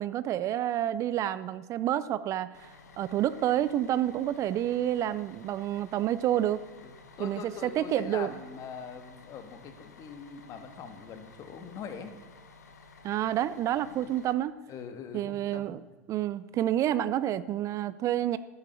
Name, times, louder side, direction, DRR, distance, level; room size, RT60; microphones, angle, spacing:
voice 1, 0.0-6.6 7.2-8.3 13.0-14.6 15.1-15.8 16.1-18.4, right 12 dB, 40° right, 16 dB, 0.4 m, -29 dB
Bus, 2.5-14.3, left 4 dB, 90° left, 1.3 m, -54 dB
voice 2, 6.8-12.1 14.7-15.8, left 6 dB, 40° left, 8 dB, 1.4 m, -43 dB
9.7 x 7.2 x 6.8 m, 1.3 s
hypercardioid pair, 105°, 9 cm